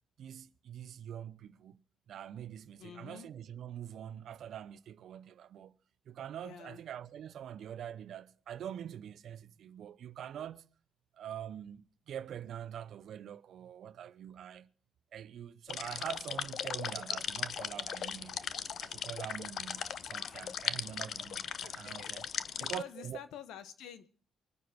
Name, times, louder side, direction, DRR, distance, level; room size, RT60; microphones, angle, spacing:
voice 1, 0.2-1.8 2.1-5.8 6.1-10.6 11.1-14.7 15.1-18.5 18.8-22.2 22.6-23.2, right 10 dB, 70° right, 0.9 m, -44 dB
voice 2, 2.8-3.3 6.4-6.8 21.6-22.1 22.5-24.1, left 9 dB, 85° left, 1.4 m, -48 dB
sound 1, 15.7-22.8, left 8 dB, 60° left, 0.7 m, -38 dB
23.5 x 9.5 x 6.1 m
cardioid pair, 90°, 0 cm